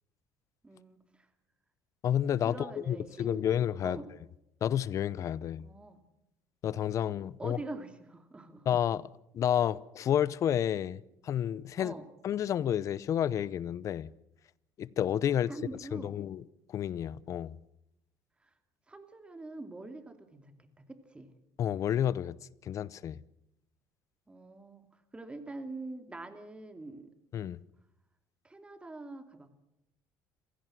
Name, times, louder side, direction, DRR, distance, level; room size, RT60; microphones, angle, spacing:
voice 1, 0.6-1.3 2.4-3.4 3.8-4.1 5.6-6.0 7.4-8.7 11.8-12.1 15.5-16.2 18.4-18.5 18.9-21.3 24.3-27.1 28.4-29.5, right 2 dB, 15° right, 2.6 m, -45 dB
voice 2, 2.0-4.0 4.6-5.7 6.6-7.6 8.7-9.1 9.3-11.9 12.2-14.1 14.8-15.5 15.9-16.4 16.7-17.5 21.6-22.4 22.6-23.2 27.3-27.6, left 10 dB, 50° left, 0.7 m, -30 dB
27.0 x 16.5 x 7.6 m
cardioid pair, 105°, 7 cm